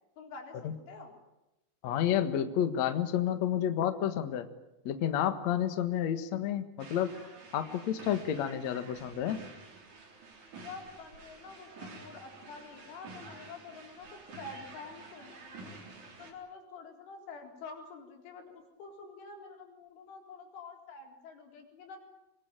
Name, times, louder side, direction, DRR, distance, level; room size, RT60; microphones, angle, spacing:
voice 1, 0.2-1.2 10.6-15.8 16.2-22.0, left 4 dB, 65° left, 3 dB, 6.3 m, -48 dB
voice 2, 1.8-4.5 4.8-7.1 7.5-9.4, left 10 dB, 90° left, 9 dB, 1.5 m, -30 dB
sound 1, 6.8-16.3, right 3 dB, 40° right, 4.8 m, -50 dB
25.5 x 21.5 x 9.1 m, 0.93 s
omnidirectional pair, 6.0 m